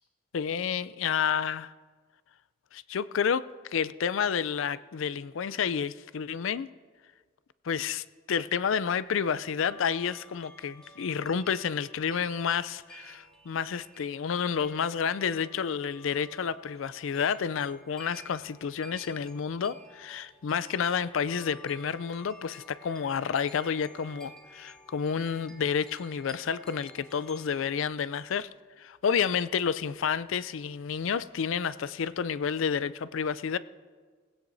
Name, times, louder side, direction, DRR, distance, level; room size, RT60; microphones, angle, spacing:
voice 1, 0.3-1.7 2.7-6.7 7.6-28.5 28.8-33.6, left 7 dB, 70° left, 16 dB, 0.4 m, -30 dB
sound 1, 9.0-27.8, right 1 dB, 5° left, 1.2 m, -53 dB
19.5 x 16.5 x 2.7 m, 1.5 s
head